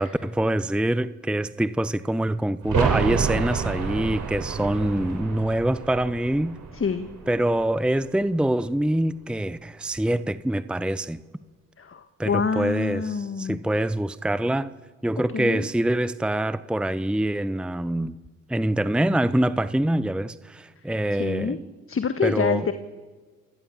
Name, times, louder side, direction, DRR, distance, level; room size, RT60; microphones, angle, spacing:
voice 1, 0.0-6.6 7.3-11.2 12.2-14.7 15.0-18.2 18.5-21.6 22.2-22.7, right 1 dB, 5° right, 15 dB, 0.9 m, -25 dB
sound 1, 2.6-8.2 8.5-8.6, right 6 dB, 55° right, 5.2 m, -29 dB
voice 2, 6.7-7.1 11.8-13.6 15.3-15.7 21.2-21.6 21.9-22.7, left 5 dB, 35° left, 9 dB, 1.6 m, -26 dB
28.5 x 18.0 x 7.4 m, 1.4 s
hypercardioid pair, 40°, 37 cm